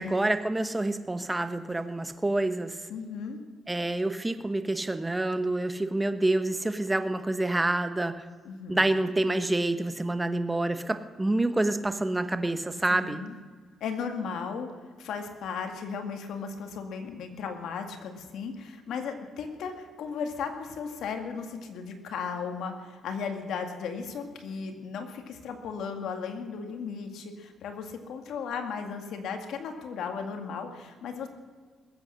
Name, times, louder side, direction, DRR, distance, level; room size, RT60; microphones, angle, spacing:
voice 1, 0.0-2.8 3.7-8.1 8.7-13.2, right 2 dB, 15° right, 10 dB, 1.0 m, -27 dB
voice 2, 2.9-3.4 8.4-8.8 12.9-13.3 13.8-14.7 15.0-31.3, left 6 dB, 75° left, 5 dB, 2.0 m, -36 dB
20.5 x 8.5 x 6.4 m, 1.5 s
cardioid pair, 90°, 0 cm